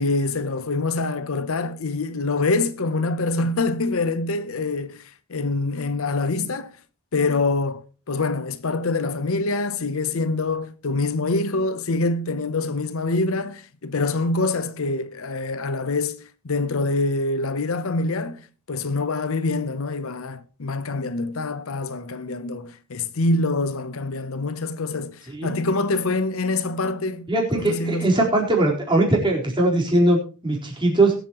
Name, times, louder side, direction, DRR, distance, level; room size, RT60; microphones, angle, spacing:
voice 1, 0.0-6.7 7.1-27.3 27.5-28.2, left 3 dB, 75° left, 0.7 m, -25 dB
voice 2, 27.3-31.1, right 2 dB, 20° right, 4.2 m, -20 dB
22.0 x 8.1 x 3.0 m
head